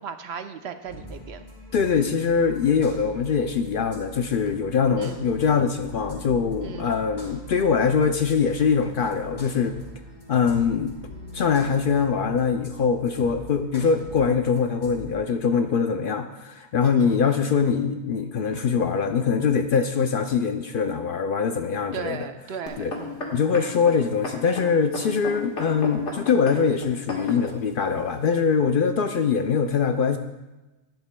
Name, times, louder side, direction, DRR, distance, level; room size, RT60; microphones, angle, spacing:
voice 1, 0.0-1.4 5.0-5.2 6.6-6.9 16.8-17.2 21.9-23.3, right 7 dB, 70° right, 8 dB, 0.8 m, -36 dB
sound 1, 0.8-15.1, left 1 dB, 40° left, 2.6 m, -42 dB
voice 2, 1.7-9.8 10.3-11.0 11.3-22.3 22.8-22.9 23.3-30.2, left 6 dB, 60° left, 7 dB, 0.6 m, -23 dB
sound 2, 22.7-27.5 28.2-28.3, left 2 dB, 80° left, 1.9 m, -33 dB
11.5 x 11.5 x 2.2 m, 1.1 s
omnidirectional pair, 1.2 m